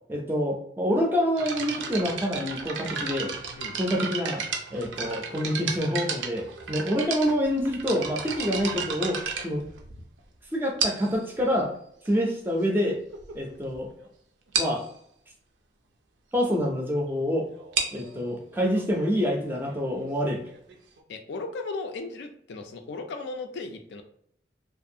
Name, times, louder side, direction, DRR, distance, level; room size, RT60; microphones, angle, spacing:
voice 1, 0.1-3.3 3.7-4.4 4.7-9.6 10.5-11.7 12.1-13.0 13.3-13.9 14.6-14.8 16.3-17.5 17.9-20.4, equal, 10° right, 0 dB, 0.4 m, -27 dB
sound 1, 1.4-10.2 10.8-11.2 12.0-12.1 12.8-12.9 13.1-13.3 13.7-13.8 14.0-14.1 14.5-14.8 17.5-21.0, right 5 dB, 85° right, 0.5 m, -33 dB
voice 2, 21.1-24.0, left 3 dB, 75° left, 6 dB, 0.4 m, -36 dB
2.5 x 2.3 x 2.7 m, 0.70 s
head